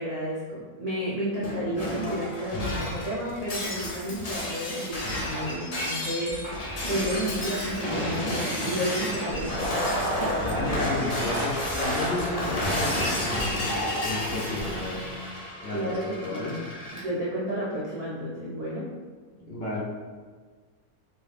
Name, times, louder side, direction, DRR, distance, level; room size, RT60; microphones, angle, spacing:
voice 1, 0.0-6.4 6.9-9.7 15.7-16.4 16.9-18.9, equal, 85° right, -7 dB, 0.3 m, -31 dB
Shatter, 1.4-17.0, left 1 dB, 85° left, 0.3 m, -30 dB
voice 2, 10.4-15.1 15.6-16.6 19.5-19.8, left 2 dB, 55° left, -6 dB, 0.7 m, -32 dB
3.1 x 2.8 x 3.4 m, 1.5 s
omnidirectional pair, 1.6 m